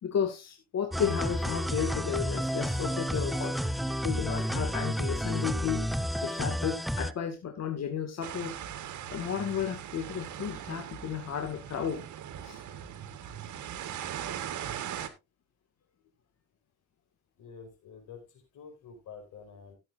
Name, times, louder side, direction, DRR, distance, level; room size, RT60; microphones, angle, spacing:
voice 1, 0.0-3.7 4.0-5.9 6.2-8.6 9.1-12.1 12.4-12.6, left 8 dB, 60° left, 5 dB, 2.0 m, -33 dB
sound 1, 0.9-7.1, equal, ahead, 0.6 m, -31 dB
sound 2, 8.2-15.1, right 10 dB, 75° right, 1.5 m, -40 dB
voice 2, 17.4-18.3 18.5-19.7, left 6 dB, 85° left, 4 dB, 5.1 m, -48 dB
17.5 x 7.8 x 2.6 m, 0.24 s
cardioid pair, 90°, 30 cm